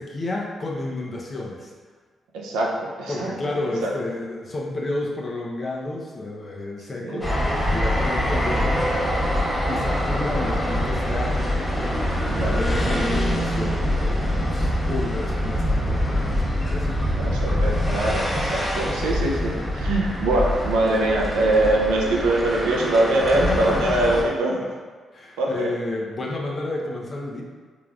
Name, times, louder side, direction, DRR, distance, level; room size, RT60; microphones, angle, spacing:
voice 1, 0.0-1.7 3.1-7.3 7.7-9.0 9.6-11.7 12.3-17.0 18.5-18.9 23.3-24.2 24.6-24.7 25.1-27.4, left 2 dB, 45° left, -2 dB, 0.7 m, -31 dB
voice 2, 2.3-3.3 3.8-3.9 7.0-7.2 12.3-12.6 17.2-24.6 25.4-25.7, right 2 dB, 85° right, -2 dB, 0.5 m, -23 dB
sound 1, 7.2-24.2, equal, 20° left, 1.2 m, -24 dB
3.8 x 3.3 x 2.4 m, 1.5 s
supercardioid pair, 50°, 0 cm